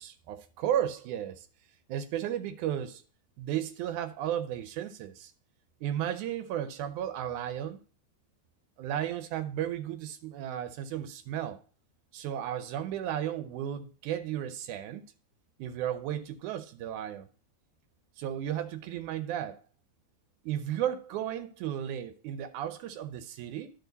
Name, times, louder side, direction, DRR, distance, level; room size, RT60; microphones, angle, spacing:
voice 1, 0.0-1.5 1.9-3.0 3.4-5.3 5.8-7.8 8.8-11.6 12.1-15.0 15.6-17.3 18.2-19.6 20.4-23.7, right 10 dB, 85° right, 2.2 m, -34 dB
11.5 x 4.6 x 4.0 m
omnidirectional pair, 3.4 m